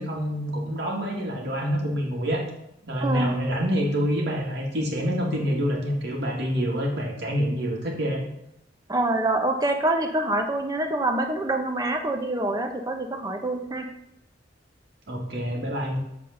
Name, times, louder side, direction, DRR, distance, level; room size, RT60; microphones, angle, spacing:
voice 1, 0.0-2.4 2.8-8.2 15.1-16.0, equal, 65° right, -1 dB, 2.2 m, -27 dB
voice 2, 3.0-3.4 8.9-13.9, right 2 dB, 20° right, 4 dB, 1.0 m, -26 dB
8.2 x 4.1 x 6.6 m, 0.83 s
head